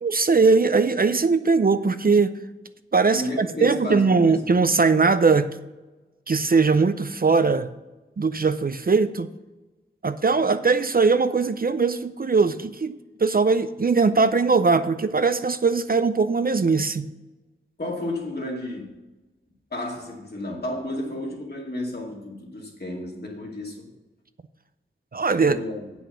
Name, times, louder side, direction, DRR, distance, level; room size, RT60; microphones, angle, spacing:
voice 1, 0.0-2.3 2.9-5.6 6.3-7.7 8.2-9.3 10.0-17.1 25.1-25.6, right 4 dB, 45° right, 11 dB, 0.5 m, -20 dB
voice 2, 3.1-4.6 17.8-18.9 19.7-23.9 25.4-25.8, left 1 dB, 50° left, -1 dB, 2.2 m, -32 dB
8.6 x 6.2 x 6.9 m, 1.1 s
wide cardioid pair, 75°, 21 cm